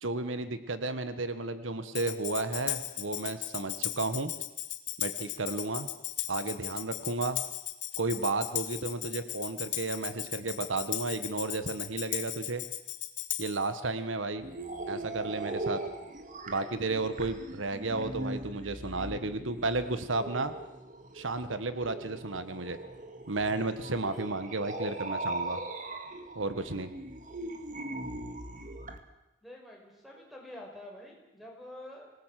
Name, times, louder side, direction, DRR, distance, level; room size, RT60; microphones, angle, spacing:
voice 1, 0.0-4.3 5.0-5.9 6.3-7.4 8.0-12.6 13.4-14.5 14.9-15.8 16.5-20.5 21.1-22.8 23.3-25.6 26.3-26.9, right 3 dB, 85° right, 11 dB, 1.5 m, -33 dB
Tambourine, 1.9-13.7, left 14 dB, 65° left, 1.6 m, -36 dB
sound 1, 14.4-29.0, right 2 dB, 40° right, 2.1 m, -40 dB
voice 2, 29.4-32.1, left 1 dB, ahead, 0 dB, 5.7 m, -47 dB
26.0 x 19.0 x 7.7 m, 0.95 s
head